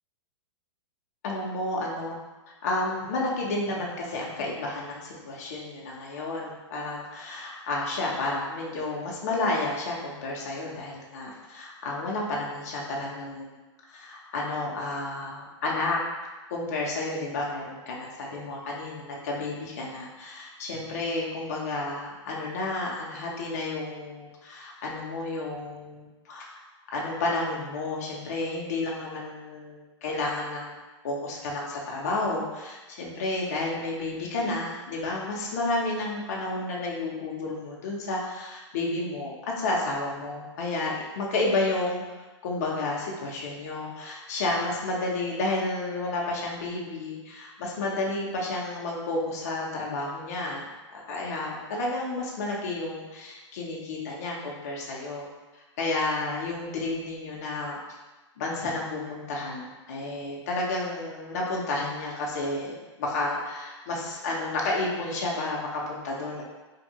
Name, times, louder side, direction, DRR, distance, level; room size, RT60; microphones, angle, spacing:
voice 1, 1.2-2.2 2.6-13.5 13.9-16.0 16.5-26.6 26.9-30.8 31.0-42.0 42.4-55.3 55.8-57.8 58.4-66.4, left 2 dB, 30° left, -3 dB, 0.4 m, -31 dB
2.6 x 2.4 x 2.7 m, 1.2 s
hypercardioid pair, 175°, 16 cm